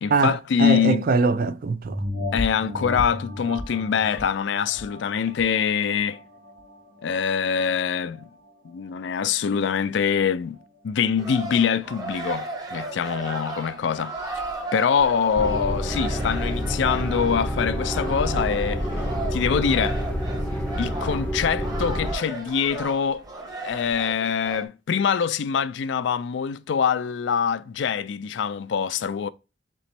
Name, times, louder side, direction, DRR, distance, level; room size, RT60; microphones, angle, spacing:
voice 1, 0.0-1.1 2.3-6.2 7.0-8.3 8.6-10.6 10.8-14.2 14.7-18.9 19.3-20.0 20.8-23.2 23.6-29.3, left 7 dB, 70° left, 0.4 m, -24 dB
voice 2, 0.6-1.9, right 4 dB, 50° right, 0.4 m, -21 dB
sound 1, 1.8-6.8 7.3-7.4, left 1 dB, 85° right, 1.2 m, -33 dB
sound 2, 11.2-24.7, right 2 dB, 20° right, 0.9 m, -35 dB
sound 3, 15.4-22.1, equal, 5° left, 0.6 m, -28 dB
4.1 x 3.0 x 4.3 m
head